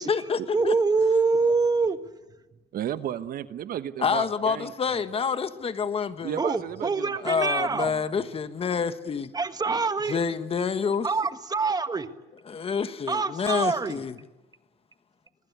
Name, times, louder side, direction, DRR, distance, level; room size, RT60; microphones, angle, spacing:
voice 1, 0.0-0.8 4.0-6.4 7.2-9.3 10.1-11.1 12.5-14.1, left 6 dB, 35° left, 1.4 m, -28 dB
voice 2, 0.5-2.0 6.4-7.9 9.3-10.2 11.0-12.1 13.1-14.0, right 4 dB, 25° right, 1.6 m, -25 dB
voice 3, 2.7-5.0 6.2-8.0, right 10 dB, 60° right, 1.1 m, -34 dB
24.5 x 20.0 x 9.6 m
cardioid pair, 110°, 17 cm